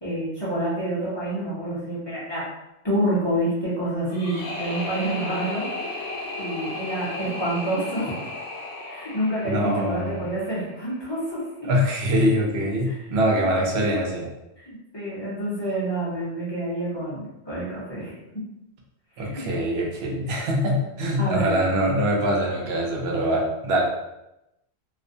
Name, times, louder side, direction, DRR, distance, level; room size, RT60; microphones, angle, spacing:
voice 1, 0.0-2.4 2.8-5.7 6.4-8.2 8.9-11.7 12.9-13.0 13.3-13.4 14.6-18.2 19.2-19.5 21.2-21.5, right 1 dB, 30° left, -9 dB, 0.6 m, -28 dB
sound 1, 4.1-11.1, left 2 dB, 75° left, 0.9 m, -34 dB
voice 2, 9.4-10.2 11.7-14.3 19.2-23.8, equal, 75° right, -1 dB, 0.8 m, -23 dB
2.4 x 2.1 x 2.5 m, 0.90 s
omnidirectional pair, 1.1 m